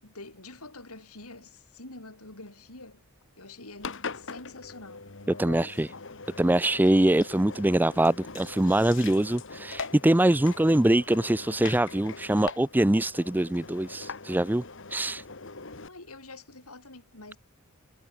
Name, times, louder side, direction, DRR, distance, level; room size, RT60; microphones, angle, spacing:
voice 1, 0.0-3.0 3.4-5.1 15.7-17.4, left 2 dB, 80° left, 6.3 m, -46 dB
Engine, 3.8-15.9, left 4 dB, 55° left, 1.7 m, -41 dB
voice 2, 5.4-5.9 6.4-14.6 14.9-15.2, right 1 dB, 10° right, 0.4 m, -23 dB
head